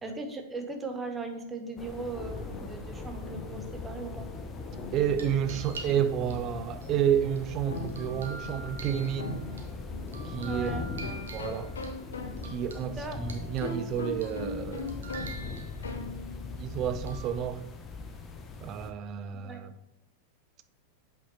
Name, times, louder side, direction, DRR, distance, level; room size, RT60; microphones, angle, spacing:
voice 1, 0.0-4.3 10.4-10.9 13.0-13.2 19.4-19.6, right 3 dB, 15° right, 1.1 m, -38 dB
sound 1, 1.8-18.9, left 3 dB, 20° left, 0.9 m, -40 dB
sound 2, 2.3-16.5, left 3 dB, 70° left, 0.8 m, -41 dB
voice 2, 4.9-9.4 10.2-10.8 11.3-11.7 12.4-14.9 16.6-17.6 18.6-19.7, right 9 dB, 35° right, 0.5 m, -30 dB
sound 3, 4.9-6.3 6.8-9.6 10.1-11.9 12.4-13.8 14.2-14.5 14.8-16.1 17.1-17.4, right 3 dB, 65° right, 1.2 m, -46 dB
8.3 x 5.3 x 3.2 m
figure-of-eight pair, 90°, 0 cm